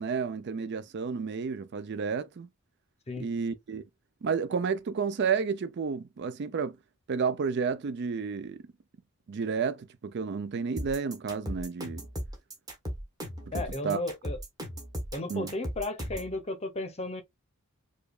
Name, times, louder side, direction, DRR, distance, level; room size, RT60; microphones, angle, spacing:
voice 1, 0.0-2.5 3.2-3.8 4.2-6.8 7.1-8.6 9.3-12.1 13.5-14.0 15.3-15.5, right 5 dB, 50° right, 0.4 m, -31 dB
sound 1, 10.8-16.3, equal, 15° right, 1.0 m, -37 dB
voice 2, 13.5-14.4 15.1-17.2, left 2 dB, 30° left, 0.7 m, -34 dB
4.9 x 2.3 x 2.3 m
head